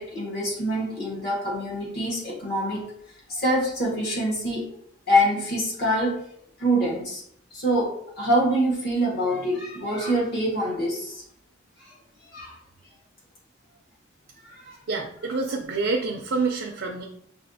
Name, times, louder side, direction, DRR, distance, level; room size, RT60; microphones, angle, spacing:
voice 1, 0.0-2.8 3.3-4.6 5.1-6.2 6.6-7.2 7.5-11.2 11.9-12.0 12.3-12.5 14.4-14.8, equal, 50° left, -5 dB, 1.5 m, -25 dB
voice 2, 14.9-17.0, right 4 dB, 60° right, 1 dB, 0.4 m, -27 dB
5.5 x 2.4 x 2.7 m, 0.71 s
head